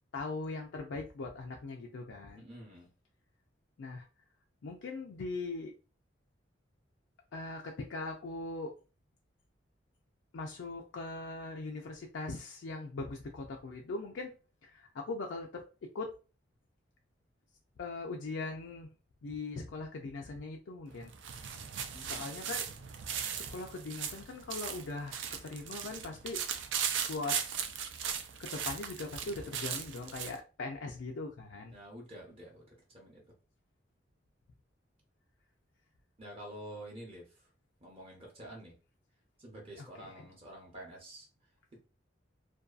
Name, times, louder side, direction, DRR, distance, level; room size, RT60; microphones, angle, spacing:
voice 1, 0.1-2.4 3.8-4.0 4.6-5.7 7.3-8.7 10.3-14.3 14.6-15.6 15.9-16.1 17.8-18.9 19.2-21.6 22.0-22.7 23.3-26.5 27.1-27.4 28.4-31.7 39.8-40.3, left 3 dB, 85° left, 2 dB, 0.4 m, -40 dB
voice 2, 2.3-2.9 21.9-22.3 31.7-33.2 36.2-37.2 37.8-38.7 39.4-41.3, right 1 dB, 30° right, -1 dB, 0.6 m, -48 dB
sound 1, 20.9-30.4, right 8 dB, 75° right, 0.4 m, -38 dB
2.5 x 2.2 x 2.3 m, 0.33 s
head